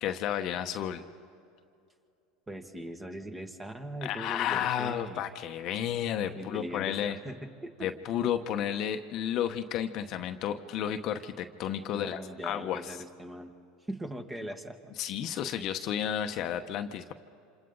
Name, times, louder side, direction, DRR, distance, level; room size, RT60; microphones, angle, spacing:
voice 1, 0.0-1.0 4.0-7.2 7.8-12.9 15.0-17.1, left 10 dB, 55° left, 7 dB, 1.0 m, -32 dB
voice 2, 2.5-5.2 6.4-7.9 11.9-13.5 13.9-14.9, right 1 dB, 15° right, 5 dB, 1.8 m, -40 dB
27.5 x 27.0 x 4.0 m, 2.5 s
supercardioid pair, 105°, 0 cm